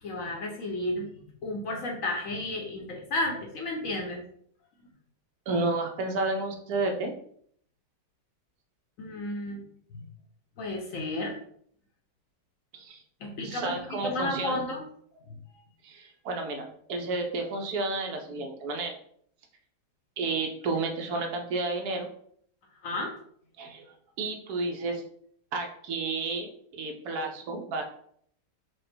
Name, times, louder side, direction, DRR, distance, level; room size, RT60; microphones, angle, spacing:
voice 1, 0.0-1.1 1.4-4.2 9.0-9.6 9.9-10.0 10.6-11.4 13.2-14.8 22.8-23.1, left 2 dB, 60° left, 1 dB, 0.9 m, -32 dB
voice 2, 5.5-7.1 12.7-13.0 13.4-14.6 15.8-18.9 20.2-22.1 23.6-23.8 24.2-25.0 25.5-27.8, right 3 dB, 70° right, 3 dB, 1.1 m, -31 dB
5.0 x 2.1 x 4.3 m, 0.63 s
omnidirectional pair, 1.8 m